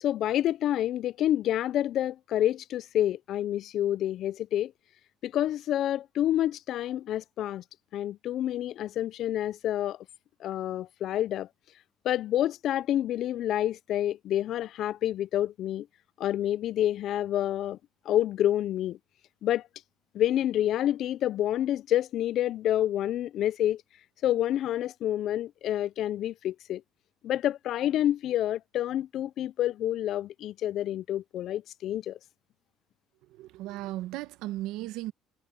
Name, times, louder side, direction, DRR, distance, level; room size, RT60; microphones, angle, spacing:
voice 1, 0.0-4.7 5.2-7.6 7.9-10.0 10.4-11.5 12.0-15.9 16.2-17.8 18.1-19.0 19.4-19.6 20.1-23.8 24.2-26.8 27.2-32.2, left 12 dB, 60° left, 0.4 m, -28 dB
voice 2, 33.2-35.1, right 16 dB, 80° right, 1.2 m, -36 dB
cardioid pair, 110°, 0 cm